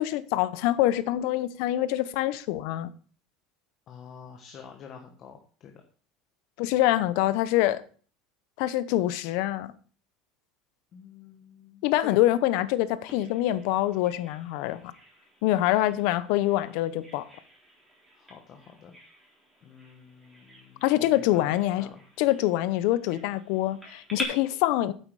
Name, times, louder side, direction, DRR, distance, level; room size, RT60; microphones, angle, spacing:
voice 1, 0.0-2.9 6.6-7.8 8.6-9.7 11.8-14.8 15.4-17.3 20.8-21.9 22.2-24.9, left 14 dB, 65° left, 0.8 m, -25 dB
voice 2, 3.9-5.7 10.9-12.2 18.1-18.9 19.6-22.0, left 7 dB, 35° left, 1.3 m, -47 dB
Bird vocalization bird call bird song, 13.1-24.2, right 1 dB, 5° right, 3.8 m, -46 dB
9.1 x 8.2 x 4.8 m
cardioid pair, 155°, 0 cm